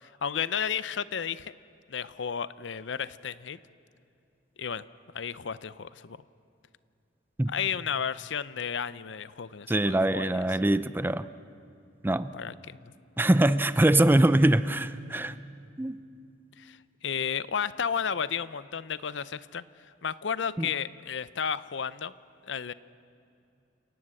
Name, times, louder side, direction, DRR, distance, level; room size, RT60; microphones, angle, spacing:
voice 1, 0.0-1.5 1.9-3.6 4.6-4.8 5.1-6.2 7.5-10.4 12.3-12.9 16.6-19.6 20.0-22.1 22.4-22.7, left 7 dB, 70° left, 17 dB, 0.6 m, -33 dB
voice 2, 9.7-11.3 12.0-12.3 13.2-15.3 15.8-16.0 20.6-20.7, right 1 dB, 10° right, 14 dB, 0.5 m, -23 dB
29.5 x 18.0 x 7.7 m, 2.5 s
head